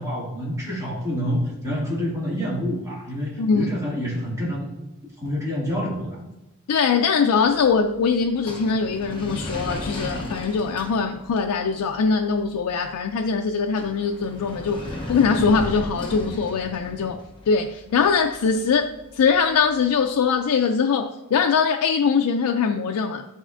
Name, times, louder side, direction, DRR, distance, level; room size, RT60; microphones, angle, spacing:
voice 1, 0.0-4.7 5.2-6.2, equal, 15° right, -6 dB, 2.1 m, -27 dB
voice 2, 3.4-3.7 6.7-18.9 19.1-23.3, left 5 dB, 85° left, 4 dB, 0.4 m, -22 dB
sound 1, 7.3-20.4, left 1 dB, 20° left, 0.8 m, -37 dB
11.0 x 4.2 x 2.5 m, 0.98 s
head